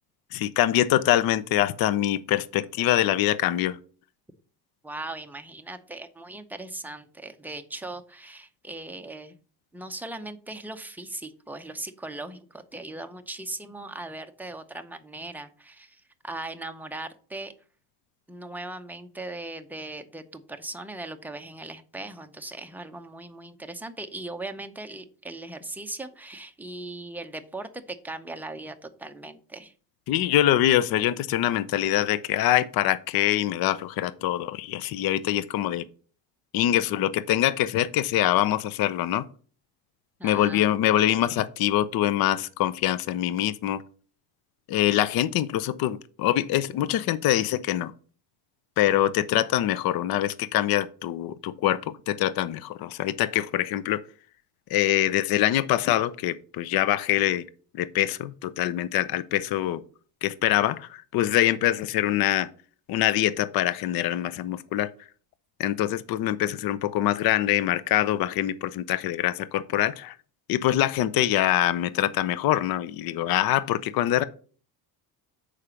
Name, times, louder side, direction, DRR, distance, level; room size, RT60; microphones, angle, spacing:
voice 1, 0.3-3.8 30.1-35.8 36.5-39.2 40.2-43.8 44.7-47.9 48.8-54.0 54.7-57.4 57.8-59.8 60.2-62.5 62.9-64.9 65.6-70.1 70.5-74.2, left 13 dB, 50° left, 0.6 m, -24 dB
voice 2, 4.8-9.4 9.7-17.5 18.3-29.7 40.2-40.7, right 2 dB, 5° right, 0.6 m, -39 dB
6.6 x 5.0 x 5.6 m
cardioid pair, 130°, 46 cm